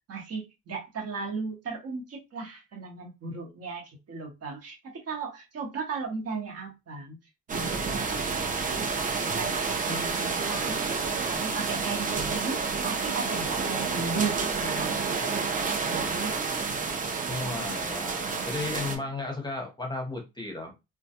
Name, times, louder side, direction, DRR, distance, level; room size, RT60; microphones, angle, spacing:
voice 1, 0.1-7.2 7.5-8.9 9.2-10.9 11.2-16.4, right 4 dB, 55° right, 0.9 m, -36 dB
sound 1, 7.5-19.0, right 4 dB, 25° right, 0.6 m, -29 dB
voice 2, 17.3-20.7, left 3 dB, 15° left, 0.7 m, -34 dB
2.2 x 2.2 x 2.8 m
cardioid pair, 90°, 30 cm